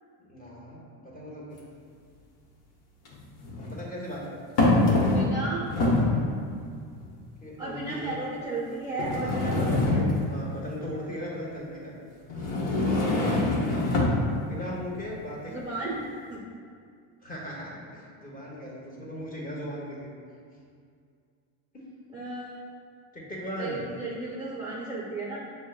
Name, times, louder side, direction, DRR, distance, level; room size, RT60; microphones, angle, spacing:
voice 1, 0.2-1.6 3.7-4.6 7.4-8.2 9.1-12.0 14.4-15.6 17.2-20.1 23.1-23.8, equal, 20° left, -5 dB, 1.0 m, -38 dB
sound 1, 1.6-1.7 3.0-3.7 4.6-5.4 5.7-6.2 7.0-7.1 7.9-8.0 9.0-10.4 12.3-14.2, left 2 dB, 75° left, 1.0 m, -24 dB
voice 2, 5.1-6.2 7.6-10.0 15.4-16.0 16.3-16.4 22.1-22.6 23.6-25.5, right 2 dB, 10° right, -6 dB, 0.5 m, -34 dB
6.2 x 2.2 x 2.3 m, 2.3 s
supercardioid pair, 105°, 42 cm